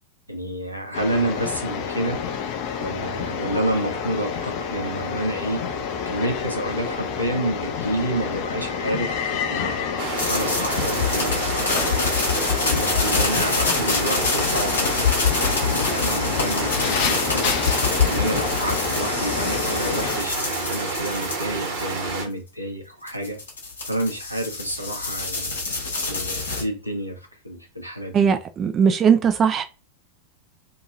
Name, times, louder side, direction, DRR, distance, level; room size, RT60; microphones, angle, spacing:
voice 1, 0.3-2.2 2.8-5.6 6.0-9.9 10.3-12.2 12.6-17.6 18.0-23.4 23.9-25.6 26.1-27.2 27.4-28.4, right 1 dB, 90° right, 0.8 m, -29 dB
sound 1, 0.9-20.2, left 6 dB, 45° left, 0.5 m, -29 dB
sound 2, 10.0-22.2, right 4 dB, 50° right, 1.2 m, -29 dB
sound 3, 10.2-22.1 23.1-26.6, left 4 dB, 75° left, 1.1 m, -26 dB
voice 2, 28.1-29.6, right 7 dB, 25° right, 0.3 m, -19 dB
2.8 x 2.7 x 2.4 m
figure-of-eight pair, 90°, 0 cm